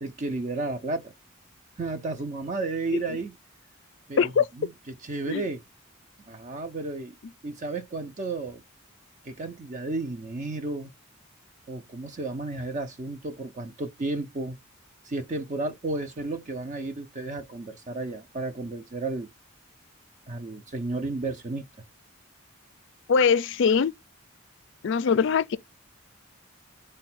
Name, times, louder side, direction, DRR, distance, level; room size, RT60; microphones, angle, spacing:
voice 1, 0.0-1.1 1.8-3.4 4.1-5.6 6.3-7.2 7.4-8.6 9.2-10.9 11.7-14.6 15.0-19.3 20.3-21.7, right 2 dB, 35° right, 0.5 m, -33 dB
voice 2, 23.1-23.9 24.8-25.6, left 6 dB, 55° left, 0.4 m, -22 dB
4.6 x 2.2 x 4.2 m
head